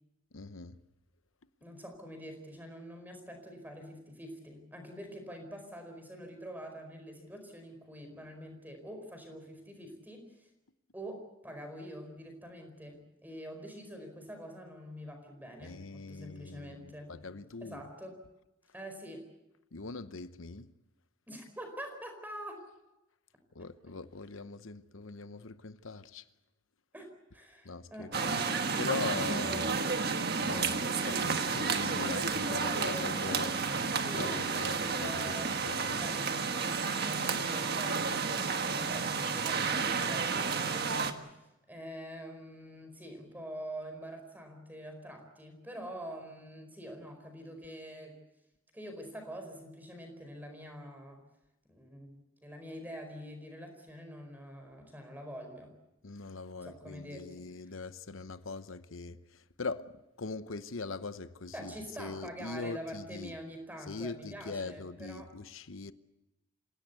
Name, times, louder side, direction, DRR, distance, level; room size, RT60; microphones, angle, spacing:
voice 1, 0.3-0.8 15.6-17.8 19.7-20.7 23.5-26.2 27.6-28.4 28.8-29.7 30.4-33.6 34.1-36.0 56.0-63.3 63.9-65.9, left 3 dB, 75° left, 0.9 m, -41 dB
voice 2, 1.6-10.5 10.9-17.1 17.6-18.2 18.7-19.2 21.3-22.6 26.9-27.1 27.3-30.0 32.5-41.4 41.7-48.2 48.7-51.2 51.7-55.7 56.6-57.5 61.5-65.3, equal, 10° right, 4.7 m, -45 dB
sound 1, 28.1-41.1, right 5 dB, 50° right, 1.5 m, -31 dB
27.0 x 17.0 x 8.2 m
head